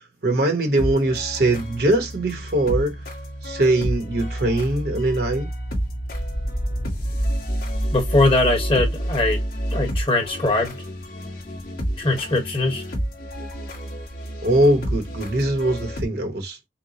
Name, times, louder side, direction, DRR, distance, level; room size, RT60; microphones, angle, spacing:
voice 1, 0.2-3.0 3.4-5.5 14.4-16.6, right 1 dB, 55° right, 1.1 m, -21 dB
sound 1, 0.8-16.0, equal, 50° left, 1.7 m, -29 dB
voice 2, 7.9-9.4 9.7-10.8 12.0-12.8, left 2 dB, 30° left, 1.4 m, -21 dB
5.9 x 2.3 x 2.9 m
head